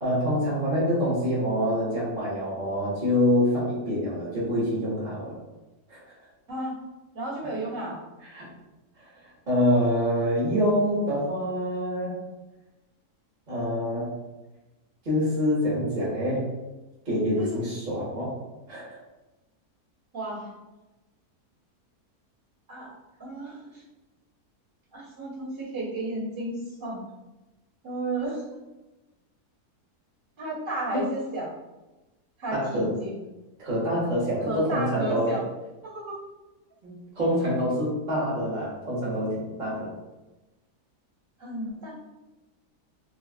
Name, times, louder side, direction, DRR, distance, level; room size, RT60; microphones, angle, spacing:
voice 1, 0.0-5.4 5.9-6.1 8.3-8.5 9.5-12.2 13.5-14.1 15.0-16.5 17.0-18.4 18.7-19.0 30.9-31.0 32.5-32.9 33.6-35.4 36.8-39.9, equal, 35° right, -8 dB, 1.1 m, -26 dB
voice 2, 7.1-8.0 17.3-17.6 20.1-20.5 22.7-22.9 23.2-23.8 24.9-27.0 27.8-28.4 30.4-31.5 32.4-33.1 34.4-35.4 35.8-36.1 41.4-41.9, right 2 dB, 50° right, -7 dB, 1.9 m, -32 dB
4.6 x 2.3 x 2.4 m, 1.1 s
omnidirectional pair, 1.7 m